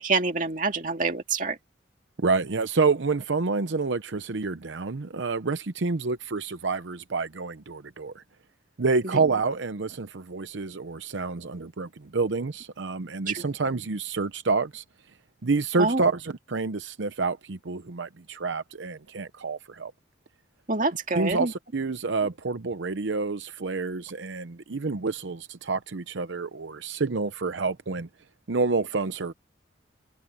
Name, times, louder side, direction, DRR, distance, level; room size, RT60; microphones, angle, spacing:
voice 1, 0.0-1.6 9.0-9.2 13.3-13.5 15.8-16.0 20.7-21.5, right 3 dB, 45° right, 2.1 m, -26 dB
voice 2, 2.2-8.2 8.8-14.8 15.4-19.9 21.1-28.1 28.5-29.3, right 4 dB, 80° right, 0.8 m, -28 dB
head